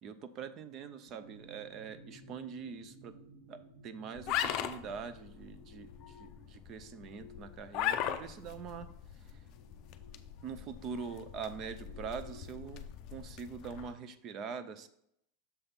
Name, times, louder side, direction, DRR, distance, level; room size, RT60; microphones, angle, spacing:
voice 1, 0.0-3.2 3.5-9.4 10.4-14.9, right 6 dB, 30° right, 12 dB, 0.5 m, -44 dB
sound 1, 1.1-12.8, equal, 50° right, 1.8 m, -58 dB
sound 2, 4.2-13.9, left 10 dB, 35° left, 0.5 m, -40 dB
6.8 x 3.5 x 5.7 m, 0.75 s
supercardioid pair, 175°, 0 cm